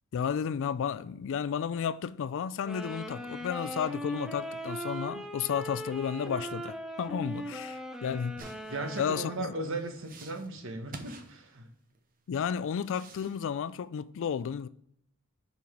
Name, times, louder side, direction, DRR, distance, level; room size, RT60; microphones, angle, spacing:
voice 1, 0.1-8.4 9.0-9.5 12.3-14.7, left 7 dB, 60° left, 0.3 m, -32 dB
sound 1, 2.6-9.7, equal, 5° right, 0.6 m, -39 dB
sound 2, 8.4-12.0 12.5-13.4, right 3 dB, 40° right, 0.8 m, -50 dB
voice 2, 8.7-11.7, right 2 dB, 65° right, 1.1 m, -37 dB
5.4 x 4.7 x 5.0 m
head